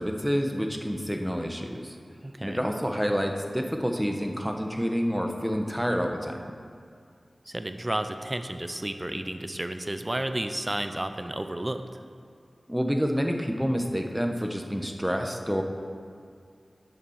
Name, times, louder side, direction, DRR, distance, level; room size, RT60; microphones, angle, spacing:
voice 1, 0.0-2.0 2.4-6.5 12.7-15.6, equal, ahead, 3 dB, 1.0 m, -28 dB
voice 2, 2.2-2.7 7.5-12.0, right 1 dB, 25° right, 8 dB, 0.6 m, -32 dB
8.9 x 6.9 x 6.4 m, 2.3 s
wide cardioid pair, 60°, 0 cm